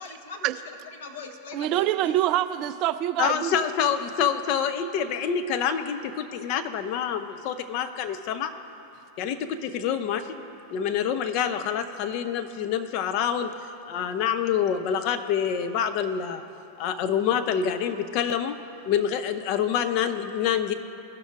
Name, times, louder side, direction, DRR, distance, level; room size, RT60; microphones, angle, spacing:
voice 1, 0.0-2.1, left 4 dB, 60° left, 2 dB, 1.0 m, -41 dB
voice 2, 1.5-3.6, right 13 dB, 40° right, 12 dB, 0.3 m, -25 dB
voice 3, 3.2-8.5 9.2-10.4 10.7-13.5 13.9-16.4 16.8-18.6 18.9-20.7, left 8 dB, 45° left, 8 dB, 0.5 m, -26 dB
16.5 x 6.1 x 2.5 m, 2.7 s
figure-of-eight pair, 90°, 0 cm